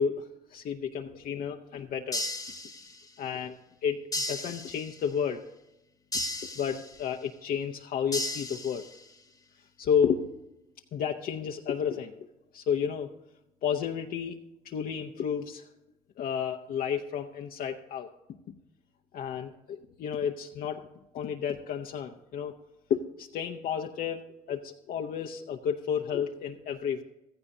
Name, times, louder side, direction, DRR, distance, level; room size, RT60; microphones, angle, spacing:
voice 1, 0.0-2.2 3.2-3.6 3.8-5.4 6.6-8.9 9.8-10.3 10.9-12.1 12.5-13.1 13.6-14.4 14.6-15.6 16.2-18.1 19.1-20.9 21.1-22.6 22.9-24.2 24.5-27.0, left 7 dB, 55° left, 3 dB, 0.7 m, -31 dB
sound 1, 2.1-3.2 4.1-5.2 6.1-7.2 8.1-9.2, left 1 dB, 20° left, 1.2 m, -35 dB
15.5 x 14.0 x 2.7 m, 0.95 s
cardioid pair, 110°, 17 cm